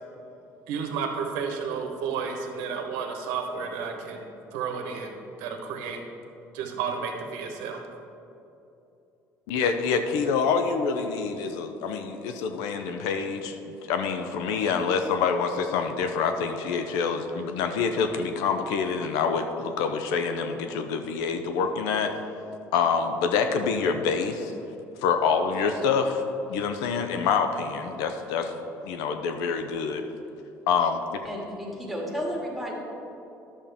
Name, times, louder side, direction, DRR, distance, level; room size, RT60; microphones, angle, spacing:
voice 1, 0.7-4.2 4.5-6.0 6.5-7.8, right 6 dB, 90° right, 3 dB, 1.1 m, -32 dB
voice 2, 9.5-22.2 22.7-24.5 25.0-26.2 26.5-28.5 28.8-30.1 30.7-31.0, left 5 dB, 85° left, 7 dB, 0.6 m, -26 dB
voice 3, 31.2-32.7, equal, ahead, -4 dB, 2.0 m, -32 dB
11.0 x 7.1 x 3.5 m, 2.8 s
cardioid pair, 105°, 6 cm